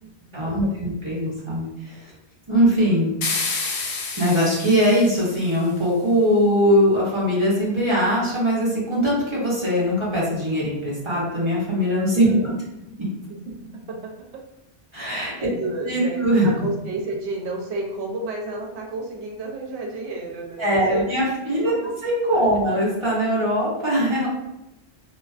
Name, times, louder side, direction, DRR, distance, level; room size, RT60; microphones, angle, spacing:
voice 1, 0.3-2.1 2.5-3.1 4.2-12.4 13.0-13.1 14.9-15.3 15.8-16.5 20.6-21.7 22.0-24.3, equal, 30° right, -7 dB, 0.7 m, -21 dB
sound 1, 3.2-5.6, left 4 dB, 75° left, 0.8 m, -29 dB
voice 2, 12.2-12.5 13.3-14.1 15.4-21.1 21.5-21.9 22.3-22.5, right 2 dB, 75° right, 0 dB, 0.8 m, -32 dB
2.3 x 2.3 x 2.3 m, 0.91 s
omnidirectional pair, 1.1 m